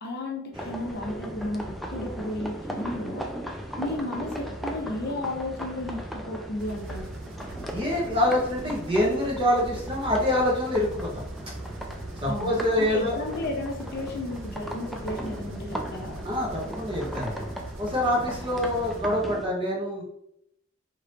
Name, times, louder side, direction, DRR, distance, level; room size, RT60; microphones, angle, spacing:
voice 1, 0.0-3.3 3.8-7.1 12.3-16.2, left 2 dB, 50° left, 1 dB, 0.6 m, -33 dB
sound 1, 0.5-19.5, equal, ahead, 0.3 m, -37 dB
sound 2, 6.6-19.0, right 2 dB, 65° right, 0.5 m, -43 dB
voice 2, 7.7-11.1 12.2-13.2 16.2-17.5 17.8-20.0, left 1 dB, 25° right, -3 dB, 1.1 m, -25 dB
4.4 x 2.9 x 3.3 m, 0.76 s
head